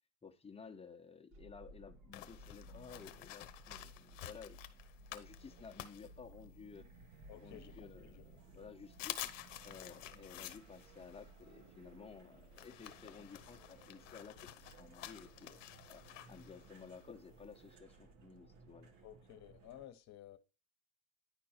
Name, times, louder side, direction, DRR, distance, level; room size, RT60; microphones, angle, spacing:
voice 1, 0.2-4.7 5.1-6.9 7.3-9.3 9.6-15.6 15.9-18.9, left 5 dB, 15° left, 1.1 m, -54 dB
sound 1, 1.3-19.9, right 2 dB, 50° right, 1.5 m, -59 dB
sound 2, 2.1-6.8 7.2-8.2 8.5-8.6 8.9-17.7, left 13 dB, 80° left, 0.9 m, -51 dB
voice 2, 7.3-8.2 8.5-8.6 19.0-20.4, left 12 dB, 45° left, 1.2 m, -55 dB
10.0 x 4.5 x 4.4 m
hypercardioid pair, 90°, 37 cm